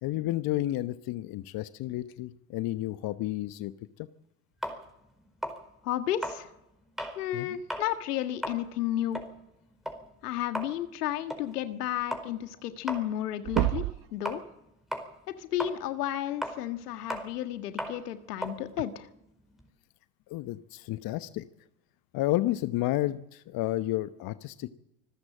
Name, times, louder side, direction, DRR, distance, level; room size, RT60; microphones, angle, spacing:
voice 1, 0.0-3.7 4.0-4.1 7.3-7.6 20.3-21.5 22.1-24.7, left 16 dB, 50° left, 13 dB, 1.0 m, -31 dB
sound 1, 4.6-7.2 7.6-7.9 8.3-14.7 14.9-19.7, equal, ahead, 4.7 m, -38 dB
voice 2, 5.8-6.5 7.1-9.2 10.2-13.8 14.1-14.4 15.4-19.1, left 12 dB, 75° left, 9 dB, 1.7 m, -32 dB
sound 2, 12.5-12.6 12.9-13.2 13.4-14.1 15.8-15.9 17.8-17.9 18.8-18.9, right 19 dB, 45° right, 0.7 m, -29 dB
26.0 x 14.0 x 7.5 m, 0.86 s
hypercardioid pair, 75°, 47 cm